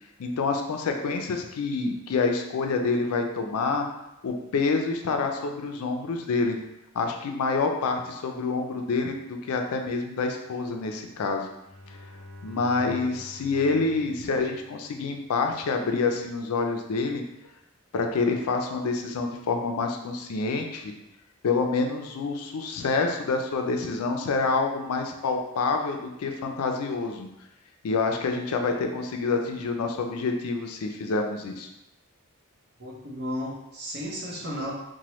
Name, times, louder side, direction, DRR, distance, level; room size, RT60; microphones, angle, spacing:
voice 1, 0.2-3.9 4.2-6.6 6.9-9.1 9.5-11.5 11.9-12.0 12.4-17.2 17.9-20.9 21.4-27.3 27.8-31.7, left 4 dB, 85° left, 4 dB, 0.4 m, -27 dB
Bowed string instrument, 11.5-15.3, left 1 dB, 5° left, 1.0 m, -48 dB
voice 2, 32.8-34.7, equal, 50° right, -3 dB, 0.7 m, -34 dB
2.9 x 2.2 x 3.0 m, 0.89 s
head